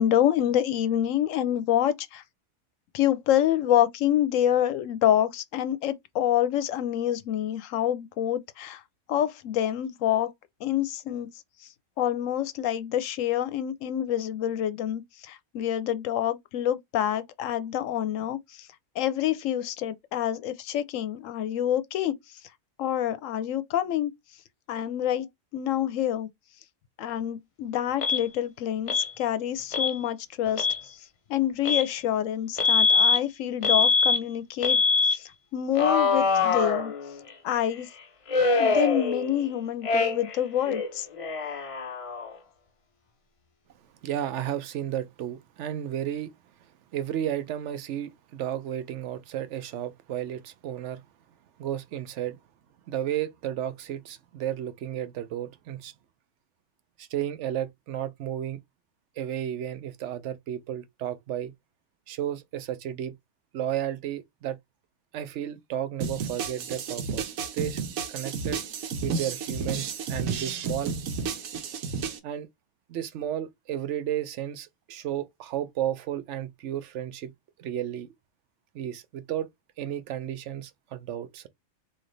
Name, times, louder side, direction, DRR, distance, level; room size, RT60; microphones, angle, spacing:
voice 1, 0.0-2.2 2.9-8.8 9.1-10.3 10.6-11.3 12.0-18.4 19.0-22.1 22.8-24.1 24.7-25.3 25.5-26.3 27.0-28.9 29.2-30.7 31.3-34.8 35.1-35.2 35.5-36.9 37.4-37.9 38.6-41.1, left 11 dB, 70° left, 0.9 m, -27 dB
Alarm, 28.0-28.2 28.9-29.1 29.7-29.9 30.5-30.8 31.6-31.9 32.6-33.2 33.6-34.2 34.6-35.2 35.7-37.3 38.3-39.5 39.8-40.4 40.6-42.4, left 4 dB, 55° left, 0.4 m, -24 dB
voice 2, 44.0-46.3 46.9-51.0 51.6-52.4 52.9-55.9 57.0-58.6 59.2-61.5 62.1-63.1 63.5-64.6 65.1-67.8 68.1-68.6 69.0-71.0 72.2-72.5 72.9-77.3 77.6-78.1 78.7-79.5 79.8-81.5, right 11 dB, 65° right, 0.8 m, -33 dB
sound 1, 66.0-72.2, right 5 dB, 90° right, 1.2 m, -32 dB
3.2 x 2.7 x 3.8 m
omnidirectional pair, 1.4 m